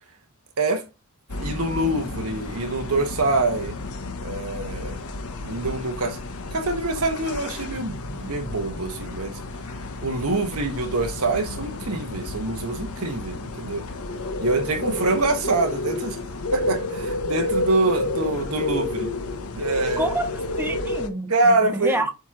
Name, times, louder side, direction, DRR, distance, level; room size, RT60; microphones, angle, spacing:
voice 1, 0.6-0.9 1.4-3.7 4.2-5.0 5.4-6.2 6.5-9.4 10.0-13.9 14.4-16.2 16.5-19.1 19.5-20.1 21.3-22.0, right 2 dB, 85° right, 1.4 m, -25 dB
sound 1, 1.3-21.1, left 2 dB, 85° left, 0.9 m, -31 dB
voice 2, 14.8-15.3 19.7-22.1, right 1 dB, 10° right, 1.2 m, -29 dB
8.0 x 3.1 x 3.8 m
head